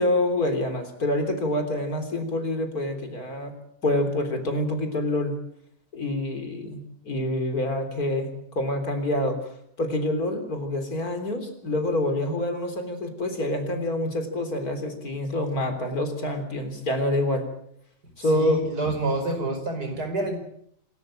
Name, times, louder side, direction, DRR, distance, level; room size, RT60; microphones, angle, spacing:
voice 1, 0.0-3.5 3.8-5.3 5.9-8.3 8.5-9.4 9.8-17.5 18.2-18.6, left 1 dB, 55° left, 6 dB, 4.0 m, -26 dB
voice 2, 18.3-20.4, right 2 dB, 65° right, 6 dB, 5.5 m, -28 dB
27.0 x 13.5 x 8.8 m, 0.69 s
omnidirectional pair, 1.9 m